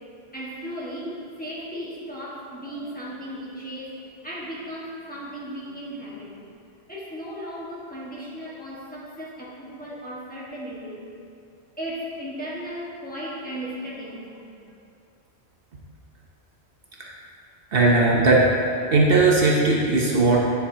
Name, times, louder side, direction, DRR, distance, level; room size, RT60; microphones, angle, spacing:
voice 1, 0.3-6.3 6.9-11.1 11.8-14.6, equal, 10° left, -8 dB, 1.4 m, -36 dB
voice 2, 17.7-18.5 18.9-20.4, right 3 dB, 60° right, -3 dB, 1.0 m, -18 dB
9.3 x 7.1 x 2.8 m, 2.5 s
omnidirectional pair, 1.1 m